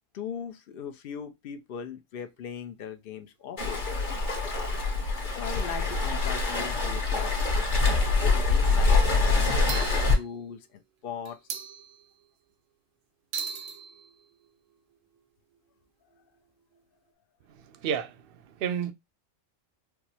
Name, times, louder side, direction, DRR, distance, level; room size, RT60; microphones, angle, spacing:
voice 1, 0.1-3.8 5.3-7.3 7.7-11.4, left 8 dB, 60° left, 0.6 m, -39 dB
sound 1, 2.2-3.3 4.1-4.2 4.4-4.5 5.9-6.0 6.5-6.9 7.2-7.4 8.1-8.6 9.7-10.8 11.3-12.5 13.3-17.1, right 7 dB, 80° right, 1.1 m, -42 dB
Waves surf, 3.6-10.1, left 3 dB, 40° left, 1.1 m, -25 dB
voice 2, 17.5-18.9, right 7 dB, 60° right, 0.6 m, -32 dB
4.7 x 2.0 x 2.7 m
omnidirectional pair, 1.3 m